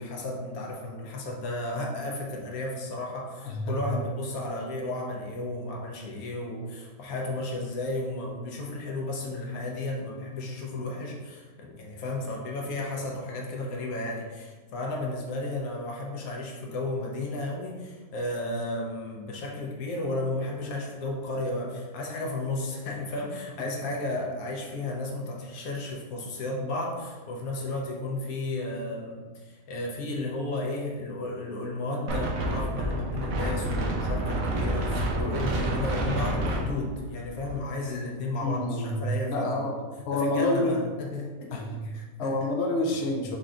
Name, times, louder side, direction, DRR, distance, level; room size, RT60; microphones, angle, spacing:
voice 1, 0.0-39.8 40.1-42.4, left 2 dB, 75° left, -1 dB, 1.2 m, -33 dB
voice 2, 3.4-3.8 38.4-39.7 40.0-40.7 41.5-41.9 42.2-43.4, left 1 dB, 55° left, -1 dB, 0.8 m, -28 dB
Wind, 32.1-37.6, right 1 dB, 65° right, 1.1 m, -29 dB
5.3 x 2.3 x 3.7 m, 1.3 s
omnidirectional pair, 1.6 m